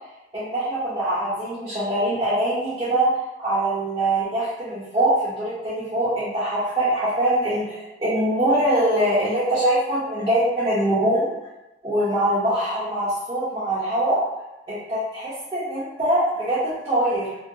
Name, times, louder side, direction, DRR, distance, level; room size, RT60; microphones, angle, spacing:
voice 1, 0.3-3.1 3.4-11.3 11.8-14.2 14.7-17.4, right 1 dB, 20° right, -13 dB, 0.8 m, -23 dB
2.8 x 2.8 x 2.7 m, 0.97 s
head